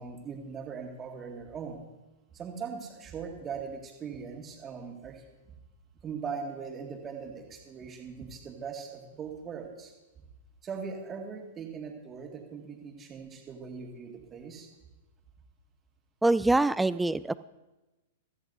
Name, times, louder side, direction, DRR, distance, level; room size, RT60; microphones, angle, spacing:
voice 1, 0.0-1.9 2.3-5.6 6.0-9.9 10.6-14.7, right 6 dB, 25° right, 2 dB, 2.0 m, -40 dB
voice 2, 16.2-17.3, right 2 dB, 5° right, 16 dB, 0.3 m, -24 dB
15.5 x 13.5 x 2.7 m, 1.1 s
figure-of-eight pair, 105°, 0 cm